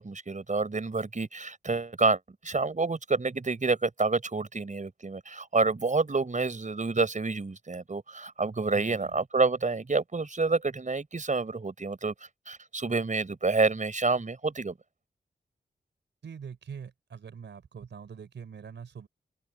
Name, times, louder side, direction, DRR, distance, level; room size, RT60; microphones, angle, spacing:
voice 1, 0.0-2.2 2.4-12.1 12.5-14.7, right 3 dB, 45° right, 4.9 m, -28 dB
voice 2, 8.7-9.1 16.2-19.1, right 6 dB, 85° right, 4.6 m, -43 dB
open air
cardioid pair, 55°, 18 cm